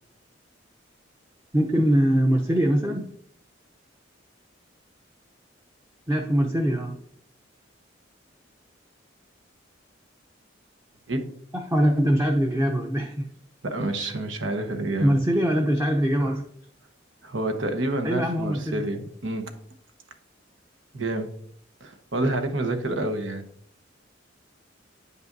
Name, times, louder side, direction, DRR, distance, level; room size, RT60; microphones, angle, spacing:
voice 1, 1.5-3.1 6.1-7.0 11.5-13.3 15.0-16.4 18.0-18.8, equal, 15° right, 2 dB, 0.6 m, -22 dB
voice 2, 13.6-15.2 17.2-19.6 20.9-21.4 21.8-23.4, right 2 dB, 85° right, 6 dB, 1.1 m, -28 dB
9.8 x 5.5 x 2.6 m, 0.66 s
head